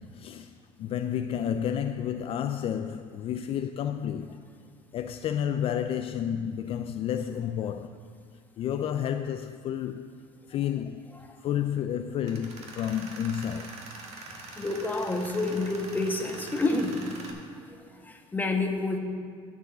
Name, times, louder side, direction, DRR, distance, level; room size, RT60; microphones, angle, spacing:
voice 1, 0.0-4.4 4.9-8.0 8.6-10.1 10.5-11.0 11.4-13.8, left 9 dB, 50° left, 0.3 m, -31 dB
Tools, 12.2-17.3, right 2 dB, 55° right, 1.7 m, -44 dB
voice 2, 14.3-17.1 17.8-19.0, left 2 dB, 15° left, 1.1 m, -29 dB
11.5 x 4.8 x 6.7 m
supercardioid pair, 100°, 13 cm